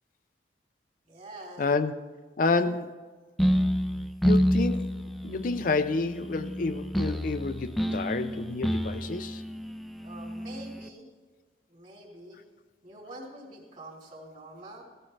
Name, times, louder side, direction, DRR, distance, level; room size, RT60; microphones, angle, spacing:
voice 1, 1.1-1.8 10.0-11.0 11.7-12.4 12.8-14.8, right 1 dB, 45° right, -2 dB, 3.4 m, -46 dB
voice 2, 1.6-1.9 2.4-3.0 4.2-4.9 5.2-9.4, left 3 dB, 50° left, 10 dB, 0.5 m, -29 dB
sound 1, 3.4-10.9, equal, ahead, 0.5 m, -29 dB
17.0 x 13.5 x 3.3 m, 1.4 s
head